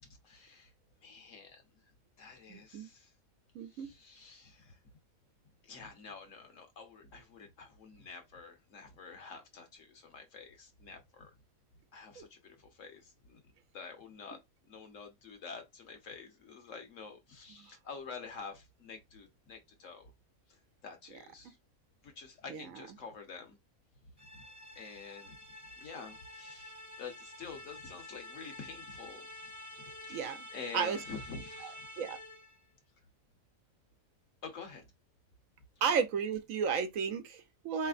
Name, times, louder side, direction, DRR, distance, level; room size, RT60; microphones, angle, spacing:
voice 1, 0.0-0.7 1.0-1.6 2.2-3.1 3.7-4.8 5.6-11.3 11.9-13.4 13.7-14.4 14.7-20.1 20.8-21.5 22.0-23.6 24.3-24.4 24.7-25.4 25.8-29.5 29.8-31.8 34.4-34.9, left 5 dB, 65° left, 1.3 m, -48 dB
voice 2, 2.5-2.9 3.5-3.9 12.2-12.3 22.5-22.6 30.1-30.4 30.7-31.0 31.6-32.2 35.8-37.9, right 6 dB, 75° right, 1.1 m, -33 dB
sound 1, 24.2-32.6, left 1 dB, 20° left, 0.5 m, -49 dB
4.1 x 3.3 x 2.4 m
omnidirectional pair, 1.5 m